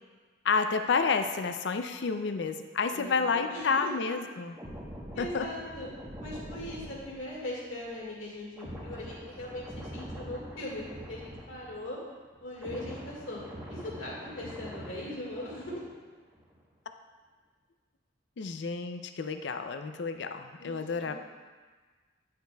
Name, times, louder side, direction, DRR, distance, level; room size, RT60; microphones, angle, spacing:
voice 1, 0.4-4.6 5.2-5.5 18.4-21.1, left 5 dB, 65° left, 8 dB, 0.4 m, -30 dB
voice 2, 2.9-4.0 5.1-5.9 6.2-12.0 12.4-15.8 20.6-21.1, left 1 dB, 85° left, -4 dB, 1.9 m, -40 dB
sound 1, 4.5-12.1 12.3-16.0 16.3-16.6, equal, 15° right, 1.1 m, -44 dB
10.0 x 6.6 x 2.3 m, 1.4 s
head